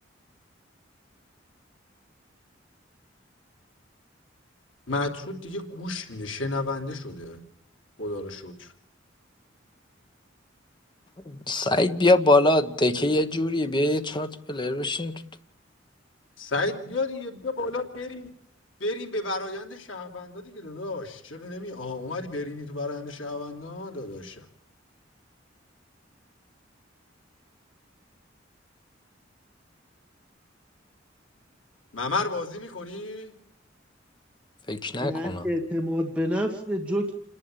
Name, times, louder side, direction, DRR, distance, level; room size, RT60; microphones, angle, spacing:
voice 1, 4.9-7.4 8.0-8.7 16.4-18.3 18.8-24.4 31.9-33.3, left 2 dB, 85° left, 3.0 m, -32 dB
voice 2, 11.3-15.2 34.7-35.5, left 2 dB, 25° left, 1.2 m, -23 dB
voice 3, 35.0-37.1, equal, 5° right, 1.5 m, -28 dB
28.5 x 11.0 x 9.0 m
head